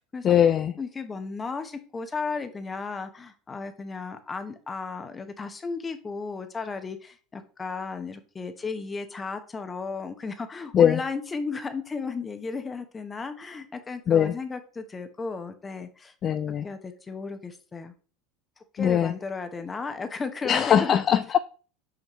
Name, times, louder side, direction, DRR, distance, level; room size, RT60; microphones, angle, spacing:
voice 1, 0.2-0.7 10.7-11.0 14.1-14.3 16.2-16.7 18.8-19.1 20.5-21.4, left 9 dB, 40° left, 0.3 m, -21 dB
voice 2, 0.8-16.1 16.6-17.9 18.7-21.0, left 4 dB, 25° left, 1.0 m, -34 dB
5.9 x 5.2 x 3.1 m
hypercardioid pair, 80°, 0 cm